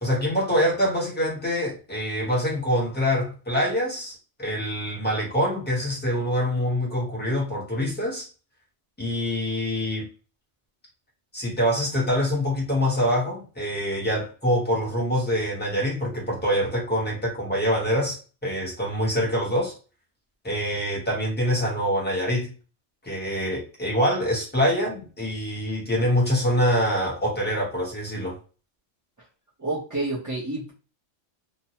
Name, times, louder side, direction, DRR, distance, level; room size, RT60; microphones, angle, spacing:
voice 1, 0.0-8.3 9.0-10.1 11.3-19.7 20.4-22.5 23.0-28.4, equal, 10° left, 0.9 m, -25 dB
voice 2, 29.6-30.7, right 2 dB, 20° right, 0.6 m, -29 dB
2.9 x 2.1 x 2.8 m
omnidirectional pair, 1.2 m